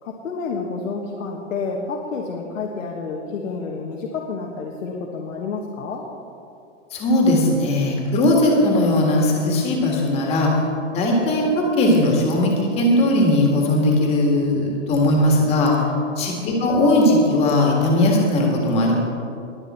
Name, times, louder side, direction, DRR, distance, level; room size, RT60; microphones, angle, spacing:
voice 1, 0.0-6.0 16.4-16.7, left 4 dB, 85° left, -1 dB, 1.6 m, -29 dB
voice 2, 6.9-10.5 10.9-15.7 16.2-18.9, left 1 dB, 15° left, 0 dB, 1.7 m, -18 dB
21.0 x 7.4 x 4.3 m, 2.5 s
hypercardioid pair, 170°, 38 cm